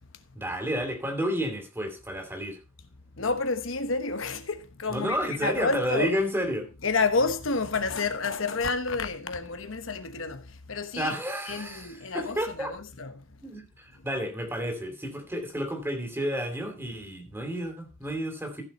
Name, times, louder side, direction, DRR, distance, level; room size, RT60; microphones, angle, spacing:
voice 1, 0.3-2.6 4.9-6.7 11.0-12.7 13.4-18.6, equal, 10° right, 2.8 m, -31 dB
voice 2, 3.2-6.1 6.8-11.1 11.5-13.1, left 4 dB, 75° left, 1.2 m, -29 dB
14.5 x 7.0 x 4.3 m
head